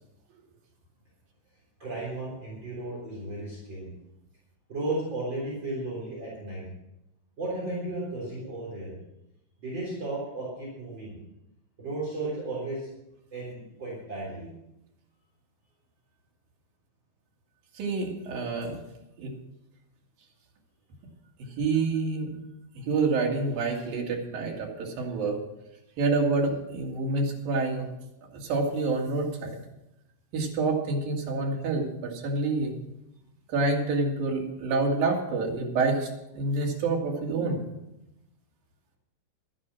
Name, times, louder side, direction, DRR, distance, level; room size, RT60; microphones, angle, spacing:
voice 1, 1.8-3.9 4.7-6.6 7.4-8.9 9.6-11.2 11.8-12.9 13.3-14.5, right 2 dB, 35° right, -5 dB, 4.2 m, -34 dB
voice 2, 17.8-18.8 19.2-19.3 21.6-22.4 22.8-25.4 26.0-27.9 28.3-29.6 30.3-32.7 33.5-37.7, right 3 dB, 85° right, 0 dB, 3.8 m, -27 dB
12.5 x 10.0 x 6.1 m, 0.89 s
omnidirectional pair, 3.9 m